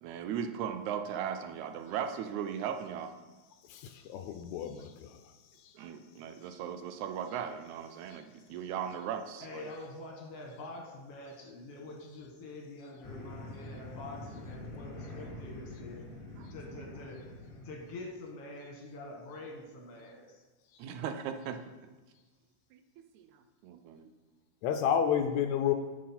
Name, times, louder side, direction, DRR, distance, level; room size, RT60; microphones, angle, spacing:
voice 1, 0.0-3.1 5.8-9.7 16.4-16.5 20.8-21.6 22.7-22.8 23.1-23.3 23.6-24.1, right 8 dB, 80° right, 8 dB, 1.9 m, -37 dB
voice 2, 3.7-5.2 5.6-5.7 8.1-8.2 24.6-25.7, left 8 dB, 80° left, 7 dB, 1.8 m, -31 dB
voice 3, 9.4-16.1 16.5-17.2 17.5-20.4, left 2 dB, 60° left, 0 dB, 2.1 m, -46 dB
sound 1, 13.0-18.1, left 1 dB, 45° left, 1.2 m, -45 dB
9.3 x 6.3 x 4.3 m, 1.2 s
omnidirectional pair, 3.5 m